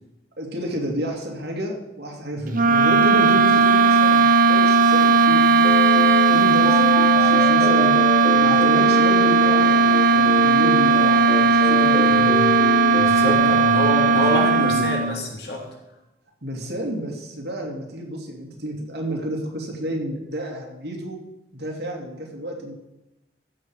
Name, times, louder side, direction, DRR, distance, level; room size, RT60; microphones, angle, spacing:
voice 1, 0.4-5.9 6.3-12.2 13.2-13.6 14.0-14.7 16.4-21.2 21.5-22.8, right 1 dB, 70° right, 0 dB, 2.4 m, -30 dB
sound 1, 2.5-15.2, right 3 dB, 50° right, 0.7 m, -16 dB
sound 2, 5.6-13.3, left 1 dB, 5° right, 0.7 m, -28 dB
voice 2, 12.1-12.5 12.9-15.7, equal, 70° left, 0 dB, 2.5 m, -27 dB
15.0 x 6.8 x 4.8 m, 0.93 s
head